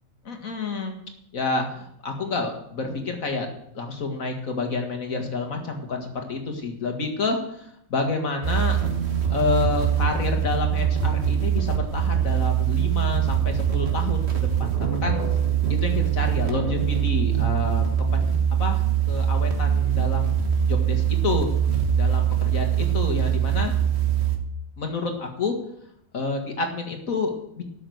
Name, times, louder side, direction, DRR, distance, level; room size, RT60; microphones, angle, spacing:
voice 1, 0.2-1.0 1.3-3.5 3.7-8.8 9.3-15.2 15.7-18.3 18.6-18.8 19.1-21.5 22.0-23.7 24.8-25.5 26.1-27.6, left 3 dB, 75° left, 3 dB, 2.2 m, -29 dB
sound 1, 8.4-24.4, right 9 dB, 50° right, 1.7 m, -23 dB
12.5 x 6.2 x 7.8 m, 0.73 s
omnidirectional pair, 1.4 m